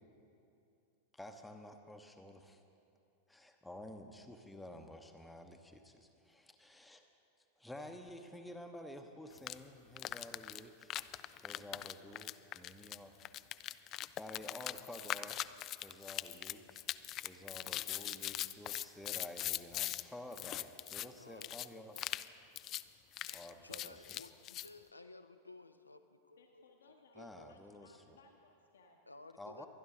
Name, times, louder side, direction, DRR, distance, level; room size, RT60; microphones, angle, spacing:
voice 1, 1.1-2.6 3.3-7.0 7.6-10.9 11.4-13.1 14.1-16.8 17.2-22.0 23.3-24.2 27.1-28.2 29.4-29.7, left 1 dB, 5° left, 4 dB, 0.9 m, -51 dB
sound 1, 9.4-9.6 10.0-20.0 20.3-21.1 21.4-21.7 22.0-22.3 22.6-22.8 23.1-24.7, left 14 dB, 35° left, 0.3 m, -41 dB
voice 2, 21.2-22.1 23.2-26.6 27.1-27.5 29.1-29.7, left 2 dB, 85° left, 9 dB, 0.6 m, -56 dB
voice 3, 26.4-29.0, left 4 dB, 65° left, 2 dB, 1.0 m, -65 dB
23.5 x 10.5 x 3.8 m, 2.7 s
figure-of-eight pair, 90°, 0 cm